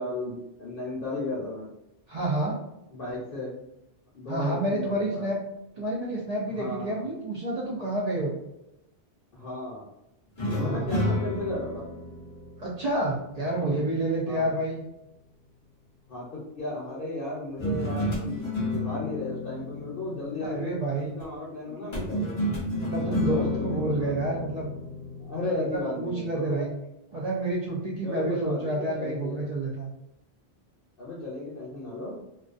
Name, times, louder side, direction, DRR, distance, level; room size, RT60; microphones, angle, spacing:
voice 1, 0.0-1.7 2.9-3.6 4.1-5.3 6.5-7.1 9.3-9.8 10.5-11.8 13.6-13.8 14.3-14.6 16.1-22.4 23.0-24.3 25.2-26.7 28.0-29.5 31.0-32.2, left 2 dB, 55° left, -5 dB, 0.8 m, -35 dB
voice 2, 2.1-2.5 4.3-5.4 5.8-8.3 10.6-11.2 12.6-14.8 20.4-21.2 21.8-22.0 22.8-24.7 25.7-26.7 27.1-29.9, right 2 dB, 55° right, -4 dB, 0.4 m, -29 dB
sound 1, 10.4-13.8 17.6-21.0 21.9-25.8, left 2 dB, 35° left, 0.5 m, -31 dB
2.4 x 2.2 x 2.4 m, 0.87 s
omnidirectional pair, 1.2 m